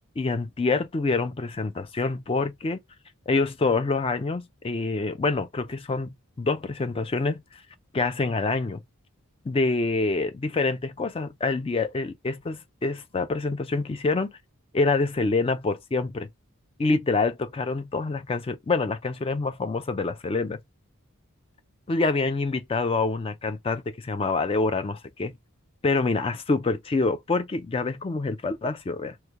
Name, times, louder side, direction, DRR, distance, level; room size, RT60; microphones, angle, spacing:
voice 1, 0.2-2.8 3.3-7.6 7.9-8.8 9.5-14.3 14.7-16.3 16.8-20.6 21.9-25.3 25.8-29.2, left 3 dB, 25° left, 0.3 m, -26 dB
3.1 x 2.2 x 3.5 m
head